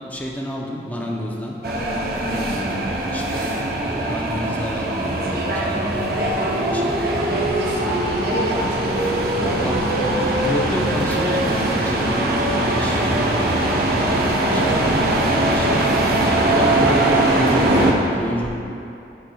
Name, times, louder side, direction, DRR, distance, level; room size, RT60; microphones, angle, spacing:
voice 1, 0.0-1.6 2.0-2.1 2.3-8.0 9.6-9.7 10.4-14.7 15.1-18.5, equal, 10° left, -2 dB, 0.5 m, -30 dB
sound 1, 1.6-17.9, right 1 dB, 55° right, 0.7 m, -21 dB
voice 2, 7.5-10.5 14.5-15.8, right 1 dB, 85° right, -3 dB, 1.0 m, -29 dB
11.0 x 4.2 x 2.3 m, 2.8 s
head